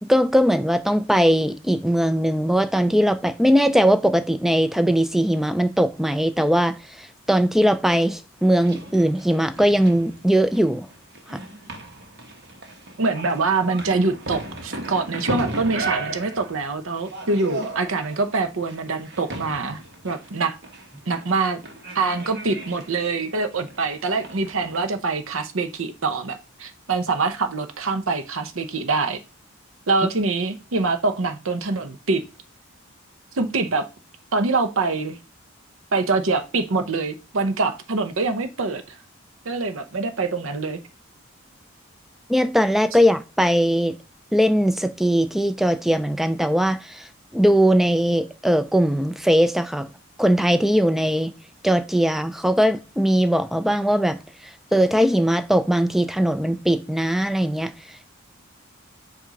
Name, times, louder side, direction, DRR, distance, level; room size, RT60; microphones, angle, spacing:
voice 1, 0.0-10.9 11.3-11.4 42.3-44.0 44.3-47.1 47.3-49.9 50.2-51.3 51.6-57.7, equal, ahead, 0.3 m, -20 dB
sound 1, 8.4-24.8, right 2 dB, 50° right, 1.2 m, -36 dB
voice 2, 13.0-20.6 21.1-21.6 21.9-29.2 29.9-32.2 33.3-33.9 34.3-35.2 35.9-39.0 39.4-40.8, right 3 dB, 75° right, 0.7 m, -24 dB
7.3 x 2.6 x 5.1 m
head